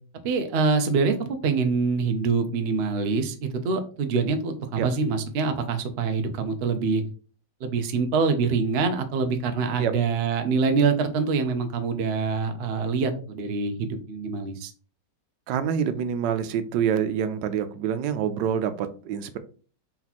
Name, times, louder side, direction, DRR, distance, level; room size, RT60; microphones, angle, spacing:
voice 1, 0.2-7.0 7.6-14.7, right 4 dB, 60° right, 7 dB, 0.6 m, -25 dB
voice 2, 15.5-19.4, right 8 dB, 85° right, 10 dB, 1.3 m, -26 dB
4.5 x 2.9 x 4.0 m, 0.39 s
omnidirectional pair, 1.9 m